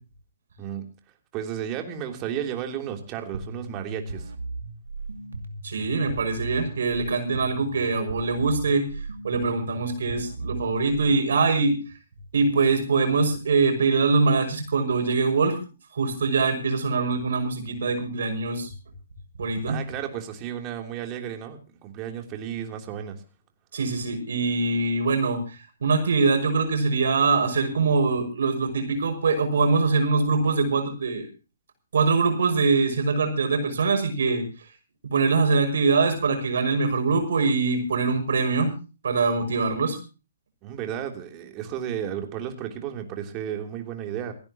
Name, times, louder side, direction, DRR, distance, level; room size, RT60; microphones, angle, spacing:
voice 1, 1.3-4.3 19.7-23.2 40.6-44.3, right 9 dB, 25° right, 4 dB, 3.2 m, -33 dB
sound 1, 3.3-11.4, right 2 dB, 80° right, 2.3 m, -36 dB
voice 2, 5.6-8.9 9.2-11.8 12.3-15.6 15.9-18.7 19.4-19.8 23.7-31.3 31.9-34.4 35.0-38.7 39.0-40.0, right 4 dB, 65° right, 6 dB, 5.9 m, -23 dB
29.0 x 10.5 x 3.0 m, 0.33 s
figure-of-eight pair, 130°, 0 cm